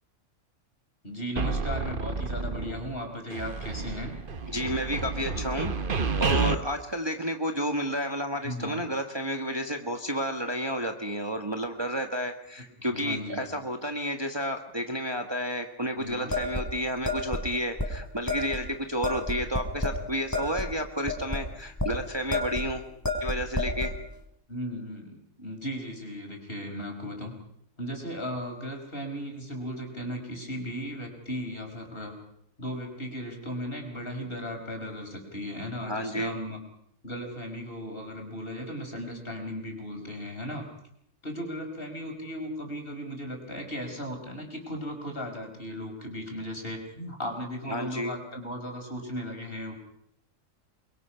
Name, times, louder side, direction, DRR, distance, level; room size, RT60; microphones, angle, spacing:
voice 1, 1.0-4.1 8.4-8.9 12.9-13.5 16.0-16.3 24.5-27.3 27.8-32.2 32.6-36.6 37.0-40.6 41.2-49.7, equal, 40° left, 3 dB, 5.2 m, -36 dB
sound 1, 1.4-3.0 3.3-6.5, right 4 dB, 40° right, 1.2 m, -30 dB
voice 2, 4.5-22.8 23.2-23.9 35.8-36.3 47.7-48.1, equal, 20° right, 4 dB, 1.6 m, -31 dB
sound 2, 16.3-17.4 17.8-17.9 18.3-18.6 19.0-20.0 20.3-21.9 22.3-22.7 23.0-23.9, left 2 dB, 10° left, 4.7 m, -30 dB
29.5 x 22.5 x 5.8 m, 0.71 s
omnidirectional pair, 1.4 m